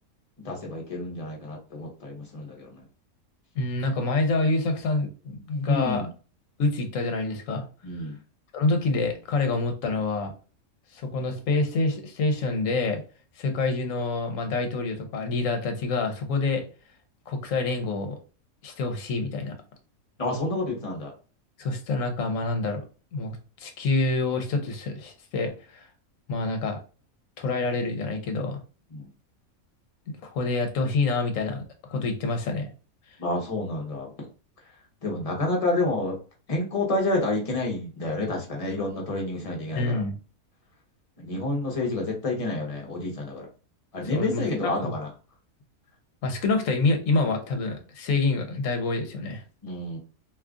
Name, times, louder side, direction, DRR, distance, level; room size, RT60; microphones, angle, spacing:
voice 1, 0.4-2.8 5.7-6.1 7.8-8.2 20.2-21.1 28.9-29.1 33.2-34.1 35.0-36.2 36.5-40.0 41.2-43.5 43.9-45.1 49.6-50.0, left 2 dB, 30° left, -1 dB, 0.9 m, -29 dB
voice 2, 3.6-6.0 6.6-7.6 8.5-10.3 10.9-13.0 13.4-16.6 17.3-18.2 18.6-19.5 21.6-22.8 23.1-25.9 26.3-26.8 27.4-28.6 30.2-31.6 31.9-32.7 39.8-40.2 44.0-45.0 46.2-49.4, left 3 dB, 65° left, 5 dB, 1.1 m, -27 dB
2.8 x 2.4 x 3.6 m, 0.36 s
omnidirectional pair, 1.5 m